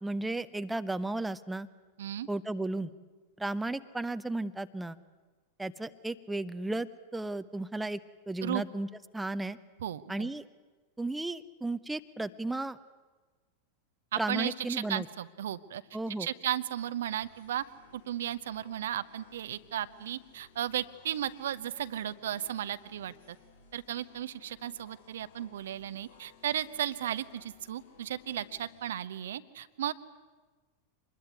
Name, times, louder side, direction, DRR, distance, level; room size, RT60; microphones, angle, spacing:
voice 1, 0.0-1.7 2.3-2.9 3.4-5.0 5.6-6.9 7.1-8.0 8.3-8.9 9.1-9.6 10.1-10.4 11.0-12.8 14.2-15.1 15.9-16.3, right 2 dB, 5° right, 11 dB, 0.8 m, -34 dB
voice 2, 9.8-10.3 14.1-15.8 16.2-17.6 17.9-23.4 23.7-29.9, right 11 dB, 60° right, 13 dB, 0.8 m, -35 dB
sound 1, 17.2-28.9, left 5 dB, 60° left, 2.6 m, -60 dB
25.0 x 21.0 x 9.6 m, 1.3 s
figure-of-eight pair, 90°, 0 cm